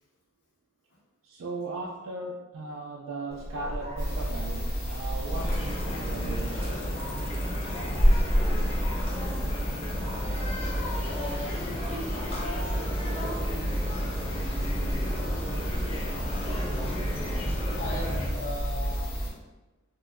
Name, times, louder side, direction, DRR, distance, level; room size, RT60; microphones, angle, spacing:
voice 1, 1.2-6.9, right 3 dB, 65° right, -2 dB, 0.4 m, -37 dB
Dog, 3.3-19.0, equal, 30° right, 0.9 m, -33 dB
sound 1, 4.0-19.3, right 1 dB, 75° left, 1.4 m, -33 dB
sound 2, 5.3-18.3, left 1 dB, 25° left, 0.4 m, -34 dB
voice 2, 7.7-8.1 8.7-8.9 10.1-10.4 10.8-11.6 17.8-19.1, left 2 dB, 60° left, -5 dB, 0.9 m, -40 dB
3.0 x 2.1 x 3.5 m, 1.1 s
head